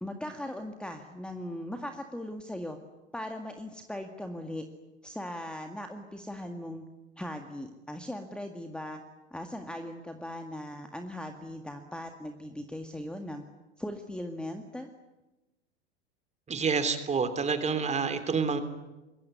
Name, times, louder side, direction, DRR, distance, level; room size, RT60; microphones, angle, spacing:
voice 1, 0.0-2.8 3.1-4.6 5.0-6.8 7.2-9.0 9.3-13.4 13.8-14.9, left 1 dB, 5° left, 6 dB, 1.9 m, -39 dB
voice 2, 16.5-18.6, right 5 dB, 20° right, 10 dB, 3.4 m, -28 dB
25.0 x 22.0 x 9.8 m, 1.0 s
figure-of-eight pair, 85°, 34 cm